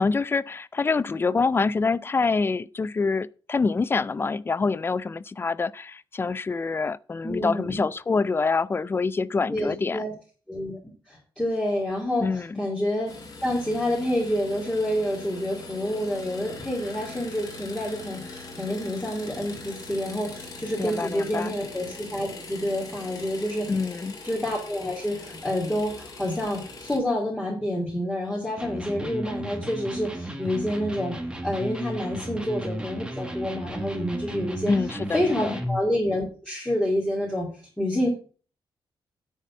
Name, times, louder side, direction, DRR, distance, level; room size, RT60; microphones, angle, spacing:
voice 1, 0.0-10.0 12.2-12.5 20.8-21.6 23.7-24.2 34.7-35.6, left 4 dB, 25° left, 0.3 m, -26 dB
voice 2, 7.2-7.8 9.5-10.1 10.5-13.1 13.4-23.7 24.2-31.2 31.4-34.7 35.1-37.5 37.8-38.1, left 1 dB, 10° left, 2.4 m, -28 dB
sound 1, 13.1-27.0, left 3 dB, 40° left, 2.8 m, -41 dB
Electric guitar, 28.6-35.9, right 1 dB, 10° right, 1.4 m, -34 dB
10.0 x 4.1 x 7.4 m
wide cardioid pair, 145°, 9 cm